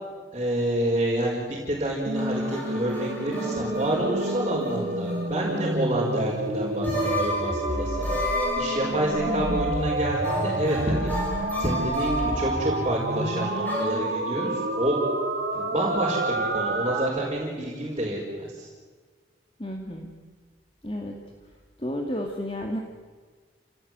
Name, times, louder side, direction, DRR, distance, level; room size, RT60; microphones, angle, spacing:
voice 1, 0.3-1.4 1.7-8.2 8.6-11.1 11.6-15.0 15.5-18.7, right 1 dB, 30° right, -5 dB, 5.3 m, -28 dB
sound 1, 2.1-5.7 6.0-6.1 6.8-13.8, equal, 10° left, 6.8 m, -33 dB
sound 2, 2.1-17.1, right 1 dB, 70° right, 3.8 m, -29 dB
voice 2, 9.3-9.7 19.6-20.1 20.8-21.2 21.8-22.8, equal, 30° left, 1 dB, 2.2 m, -32 dB
29.5 x 17.5 x 9.4 m, 1.5 s
head